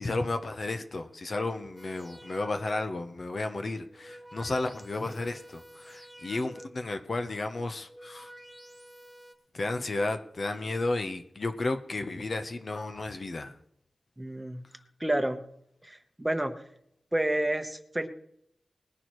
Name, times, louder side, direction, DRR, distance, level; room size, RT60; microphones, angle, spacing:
voice 1, 0.0-8.3 9.5-13.5, left 2 dB, 45° left, 7 dB, 0.9 m, -33 dB
sound 1, 1.8-3.1 3.8-6.9 7.7-9.3, right 1 dB, 10° left, 1.7 m, -50 dB
voice 2, 14.2-14.6 15.0-15.4 15.8-16.5 17.1-18.1, right 1 dB, 15° right, 7 dB, 1.0 m, -29 dB
20.0 x 11.0 x 3.1 m, 0.71 s
wide cardioid pair, 115°, 0 cm